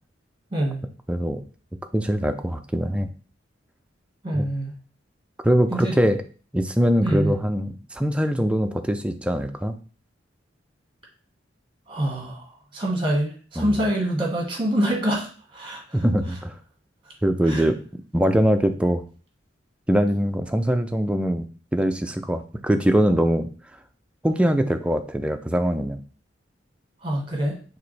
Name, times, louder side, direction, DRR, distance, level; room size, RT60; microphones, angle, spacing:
voice 1, 0.5-0.8 4.2-4.7 5.7-5.9 7.0-7.3 11.9-12.4 12.7-16.0 17.5-17.6 27.0-27.6, right 1 dB, 25° right, 0 dB, 1.5 m, -25 dB
voice 2, 1.1-1.4 1.9-3.1 4.3-4.5 5.4-6.2 6.5-9.7 13.6-13.8 15.9-16.6 17.2-17.8 18.1-19.0 19.9-21.4 21.7-23.5 24.2-26.0, equal, 5° right, 6 dB, 0.3 m, -22 dB
4.9 x 3.4 x 3.2 m, 0.39 s
head